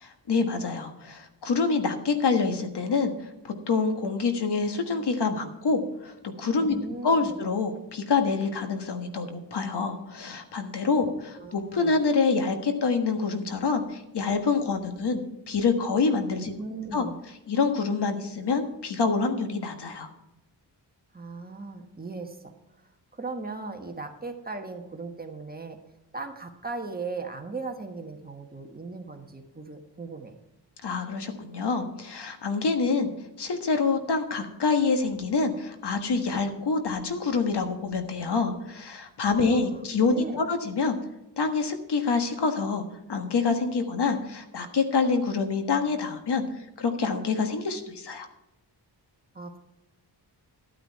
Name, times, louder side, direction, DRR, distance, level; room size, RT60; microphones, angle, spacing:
voice 1, 0.0-6.7 7.0-16.5 16.9-17.0 17.5-20.1 30.8-33.1 33.4-41.0 41.4-42.8 43.1-48.3, left 4 dB, 70° left, 6 dB, 1.5 m, -26 dB
voice 2, 6.6-7.4 11.0-12.0 16.3-17.2 21.1-22.5 23.1-25.8 26.1-30.3 39.3-40.4 49.3-49.6, right 3 dB, 20° right, 4 dB, 1.3 m, -38 dB
12.5 x 9.1 x 4.6 m, 0.92 s
wide cardioid pair, 125°, 42 cm